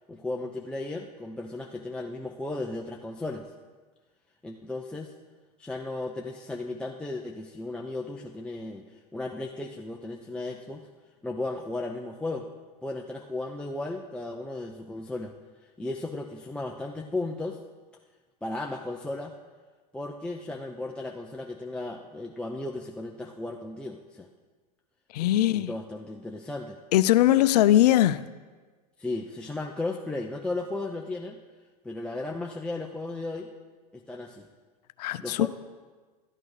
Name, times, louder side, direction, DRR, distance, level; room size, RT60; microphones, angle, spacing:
voice 1, 0.1-3.5 4.4-5.1 5.6-10.9 11.2-12.5 12.8-15.3 15.6-17.6 18.4-19.4 19.9-24.3 25.2-26.8 29.0-31.4 31.8-33.5 33.9-34.5 35.2-35.5, left 2 dB, 5° left, 0 dB, 0.6 m, -35 dB
voice 2, 25.1-25.7 26.9-28.2 35.0-35.5, left 13 dB, 75° left, 15 dB, 0.5 m, -20 dB
12.5 x 8.7 x 4.9 m, 1.4 s
hypercardioid pair, 105°, 20 cm